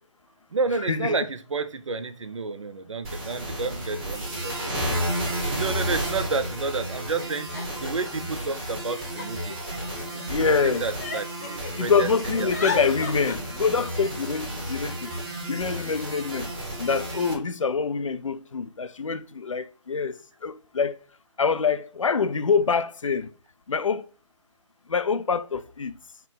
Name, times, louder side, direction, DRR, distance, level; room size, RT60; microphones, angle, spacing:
voice 1, 0.5-4.7 5.6-7.5 7.8-9.6 10.4-12.8, right 4 dB, 75° right, 0.6 m, -30 dB
sound 1, 3.0-17.3, right 1 dB, 15° right, 1.0 m, -32 dB
Giggle, 4.6-4.7 5.7-5.8 6.0-6.5 7.2-8.3 8.9-10.2 10.7-11.7 12.0-13.3, left 4 dB, 35° left, 0.8 m, -36 dB
voice 2, 10.3-10.9 11.8-15.1 15.5-16.5 16.8-21.0 21.4-23.3 23.7-24.1 24.9-26.0, left 5 dB, 85° left, 0.4 m, -25 dB
4.4 x 2.2 x 3.9 m
figure-of-eight pair, 150°, 16 cm